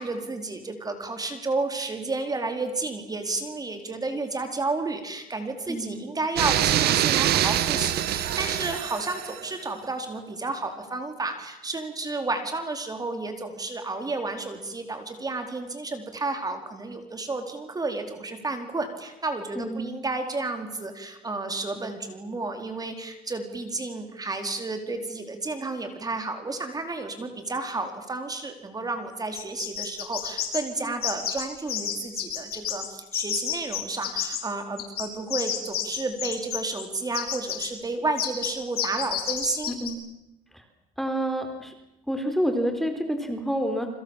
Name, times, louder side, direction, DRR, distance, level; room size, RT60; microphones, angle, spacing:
voice 1, 0.0-39.7, right 3 dB, 20° right, 6 dB, 4.5 m, -31 dB
voice 2, 5.7-6.0 19.6-19.9 30.8-30.9 39.7-40.0 40.5-40.6 41.0-41.7 42.1-43.9, equal, ahead, 6 dB, 4.2 m, -28 dB
sound 1, 6.4-9.5, right 12 dB, 70° right, 1.8 m, -24 dB
sound 2, 29.3-30.6 31.0-31.4 31.7-32.9 33.1-34.4 34.8-36.8 37.1-37.7 38.2-38.5 38.8-39.9, left 10 dB, 65° left, 7.4 m, -29 dB
29.0 x 25.5 x 7.5 m, 0.88 s
cardioid pair, 110°, 17 cm